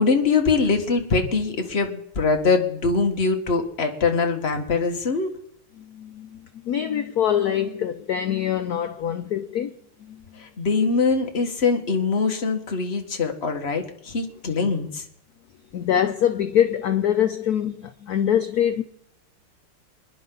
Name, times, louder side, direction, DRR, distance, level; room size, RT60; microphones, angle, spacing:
voice 1, 0.0-5.3 10.4-15.0, left 4 dB, 30° left, 1.6 m, -23 dB
voice 2, 5.8-9.7 10.0-10.2 15.7-18.8, left 10 dB, 70° left, 0.9 m, -24 dB
26.0 x 10.5 x 3.9 m
omnidirectional pair, 2.4 m